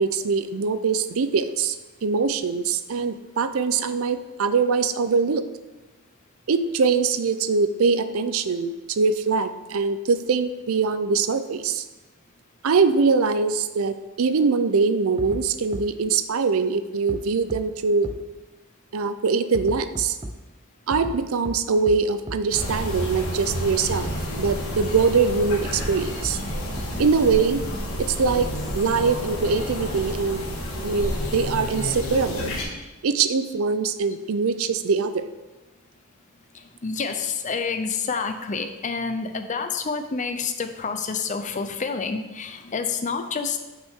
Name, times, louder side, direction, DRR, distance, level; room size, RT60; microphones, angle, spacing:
voice 1, 0.0-1.8 2.0-5.4 6.5-11.8 12.6-18.1 18.9-20.2 20.9-24.1 24.4-26.4 27.0-27.6 28.0-28.5 28.7-30.4 30.8-32.5 33.0-35.3, right 4 dB, 70° right, 11 dB, 0.5 m, -23 dB
sound 1, 15.2-15.4 15.7-15.8 17.1-17.2 17.5-17.6 18.0-18.1 19.5-20.3 20.9-21.1 21.4-21.5 21.9-22.0 22.3-22.4 23.9-24.1 24.4-24.5 25.8-25.9 26.2-26.3 26.8-26.9 28.3-29.0, right 1 dB, 20° right, 0.5 m, -33 dB
sound 2, 22.5-32.6, equal, 65° left, 1.7 m, -30 dB
voice 2, 36.5-43.6, left 5 dB, 35° left, 7 dB, 0.6 m, -28 dB
8.3 x 6.0 x 3.6 m, 1.1 s
head